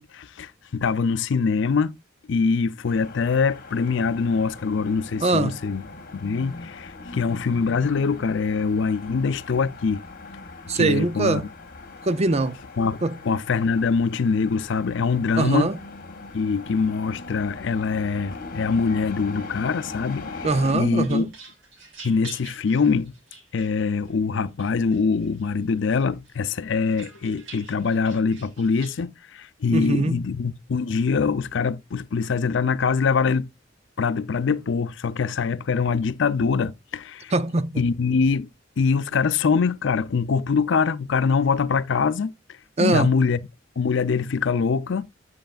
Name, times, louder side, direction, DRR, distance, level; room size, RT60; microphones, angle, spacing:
voice 1, 0.0-1.9 2.3-5.8 6.1-10.0 10.7-11.4 12.8-15.7 16.3-21.3 22.0-23.1 23.5-33.5 34.0-37.3 37.8-38.5 38.8-42.3 42.8-43.4 43.8-45.1, left 5 dB, 70° left, 0.5 m, -23 dB
sound 1, 2.9-20.7, left 3 dB, 50° left, 1.5 m, -40 dB
voice 2, 5.2-5.6 10.7-11.5 12.0-12.6 13.0-13.2 15.4-15.8 20.4-21.3 29.7-30.2 37.3-37.8 42.8-43.1, right 3 dB, 35° right, 0.5 m, -22 dB
sound 2, 20.9-24.1 24.6-25.5 25.9-29.0, right 4 dB, 80° right, 2.5 m, -46 dB
7.9 x 7.8 x 2.4 m
head